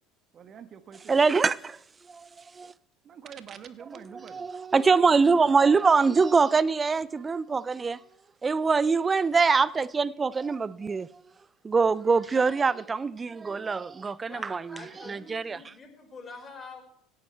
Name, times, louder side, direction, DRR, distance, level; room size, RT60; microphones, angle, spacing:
voice 1, 0.3-1.2 3.0-4.5 5.0-5.9, right 7 dB, 40° right, 1.2 m, -47 dB
voice 2, 1.1-1.8 2.1-2.3 2.6-2.7 4.3-8.0 8.4-11.1 11.6-14.6 15.1-15.6, right 4 dB, 25° right, 0.5 m, -23 dB
voice 3, 14.3-16.8, left 4 dB, 25° left, 5.2 m, -46 dB
17.0 x 11.0 x 3.4 m
hypercardioid pair, 70°, 0 cm